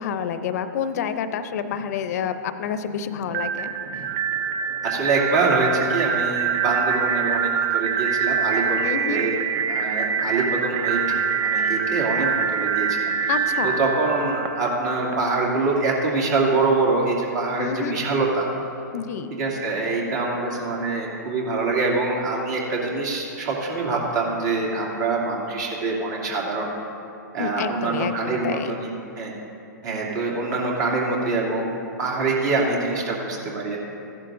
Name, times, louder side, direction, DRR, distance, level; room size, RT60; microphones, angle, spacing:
voice 1, 0.0-3.7 8.8-9.2 13.3-13.8 17.6-18.0 18.9-19.3 27.4-28.8, left 7 dB, 55° left, 11 dB, 0.6 m, -28 dB
sound 1, 3.3-15.1, right 7 dB, 30° right, 0.5 m, -25 dB
voice 2, 4.8-9.4 9.7-18.5 19.4-26.7 27.3-29.3 29.8-33.8, right 3 dB, 60° right, -3 dB, 2.6 m, -25 dB
15.0 x 11.0 x 2.6 m, 2.8 s
hypercardioid pair, 130°, 10 cm